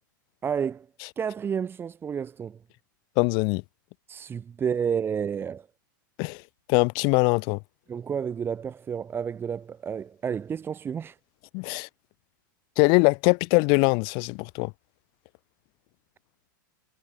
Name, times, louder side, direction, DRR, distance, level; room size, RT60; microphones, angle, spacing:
voice 1, 0.4-0.9 1.2-2.6 4.1-5.7 7.9-11.2, right 7 dB, 20° right, 1.3 m, -30 dB
voice 2, 3.2-3.6 6.2-6.4 6.7-7.6 11.5-11.9 12.8-14.7, left 34 dB, 45° left, 0.4 m, -22 dB
hypercardioid pair, 110°, 11 cm